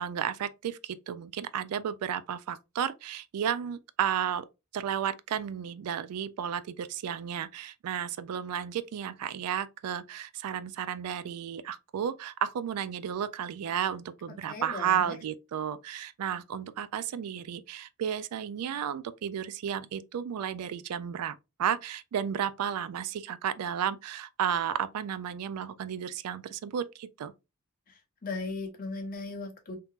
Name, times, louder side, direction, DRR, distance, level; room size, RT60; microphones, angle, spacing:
voice 1, 0.0-4.5 4.7-27.3, right 9 dB, 85° right, 0.3 m, -33 dB
voice 2, 14.5-15.2 27.9-29.8, left 3 dB, 40° left, 1.0 m, -37 dB
3.5 x 2.8 x 2.4 m
head